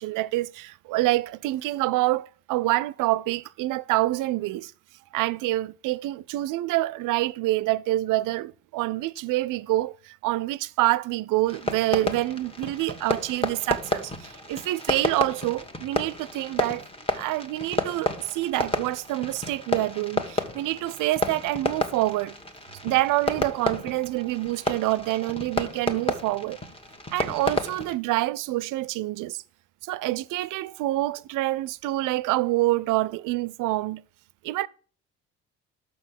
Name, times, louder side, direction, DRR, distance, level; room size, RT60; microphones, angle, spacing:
voice 1, 0.0-4.7 5.1-16.9 17.1-22.3 22.8-26.6 27.1-29.4 29.8-34.0 34.4-34.7, right 17 dB, 60° right, 0.5 m, -27 dB
Fireworks, 11.5-28.0, left 1 dB, 15° left, 1.5 m, -31 dB
6.1 x 6.1 x 7.2 m
hypercardioid pair, 60°, 37 cm